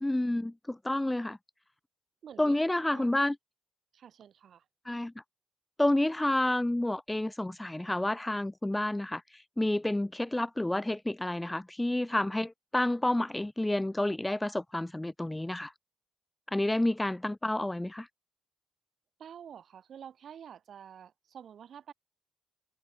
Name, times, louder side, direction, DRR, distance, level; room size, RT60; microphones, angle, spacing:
voice 1, 0.0-1.4 2.4-3.3 4.9-5.1 5.8-15.7 16.5-18.1, left 1 dB, 10° left, 0.6 m, -29 dB
voice 2, 2.2-2.6 2.9-3.2 3.9-4.7 19.2-21.9, right 8 dB, 60° right, 6.1 m, -49 dB
cardioid pair, 90°, 0 cm